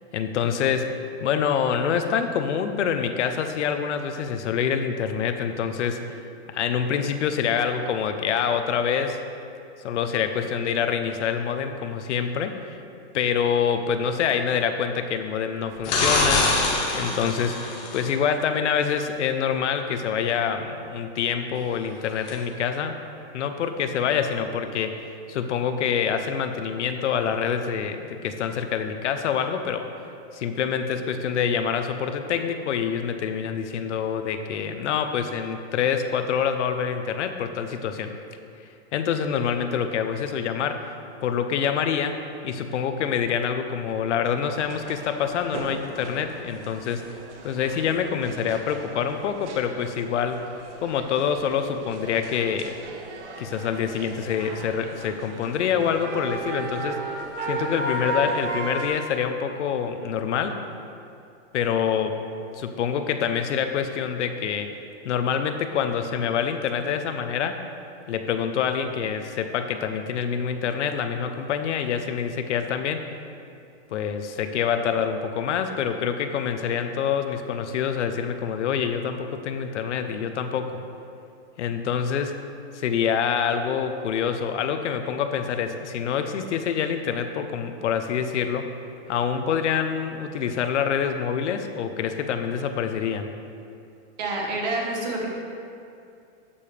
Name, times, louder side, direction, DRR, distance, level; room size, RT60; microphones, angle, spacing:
voice 1, 0.1-6.2 6.5-9.2 9.8-12.8 13.1-16.5 16.9-23.0 23.3-29.9 30.3-38.1 38.9-40.9 41.2-42.2 42.4-47.1 47.4-50.5 50.8-52.7 53.4-57.1 57.4-60.6 61.5-62.2 62.5-64.7 65.0-67.6 68.1-73.0 73.9-80.8 81.6-82.4 82.7-88.8 89.1-93.3, left 7 dB, 85° left, 7 dB, 0.9 m, -26 dB
sound 1, 15.8-18.1 22.3-22.4, left 2 dB, 15° left, 0.5 m, -24 dB
sound 2, 44.6-58.9, right 2 dB, 85° right, 1.4 m, -35 dB
voice 2, 94.2-95.3, right 2 dB, 40° right, -1 dB, 1.6 m, -27 dB
12.5 x 7.0 x 3.4 m, 2.6 s
supercardioid pair, 180°, 34 cm